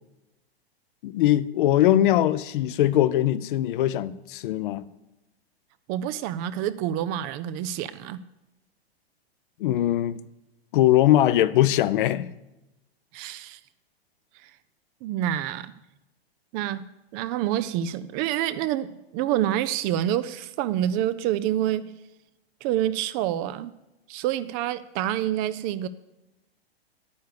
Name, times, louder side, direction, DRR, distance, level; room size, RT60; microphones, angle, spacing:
voice 1, 1.0-4.8 9.6-10.2 10.7-12.3, left 13 dB, 55° left, 0.7 m, -21 dB
voice 2, 5.9-8.2 13.1-13.6 14.4-14.5 15.0-15.7 16.5-16.9 17.1-21.9 22.6-23.7 24.1-25.9, right 11 dB, 30° right, 0.4 m, -27 dB
10.0 x 9.5 x 6.7 m
hypercardioid pair, 110°, 32 cm